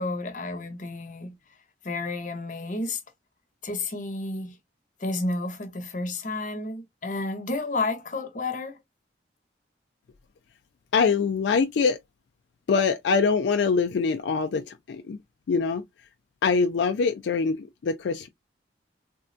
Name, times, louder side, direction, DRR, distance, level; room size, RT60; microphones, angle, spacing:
voice 1, 0.0-1.3 1.8-3.0 3.6-4.6 5.0-8.8, left 2 dB, 45° left, 0.8 m, -31 dB
voice 2, 10.9-12.0 12.7-15.2 15.5-15.8 16.4-18.3, left 5 dB, 80° left, 0.3 m, -24 dB
3.4 x 2.0 x 2.5 m
head